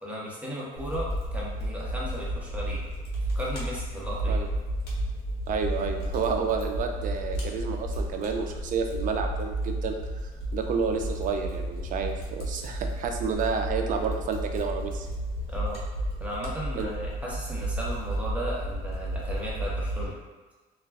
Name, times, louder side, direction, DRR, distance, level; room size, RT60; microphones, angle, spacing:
voice 1, 0.0-2.8 3.3-4.4 15.5-15.8 16.2-20.1, equal, 10° right, -6 dB, 0.8 m, -35 dB
Fire, 0.8-20.1, right 1 dB, 75° left, 0.8 m, -32 dB
voice 2, 5.5-9.9 10.2-15.1 16.8-16.9, right 5 dB, 50° right, 4 dB, 0.4 m, -30 dB
2.3 x 2.2 x 3.4 m, 1.3 s
cardioid pair, 110°, 17 cm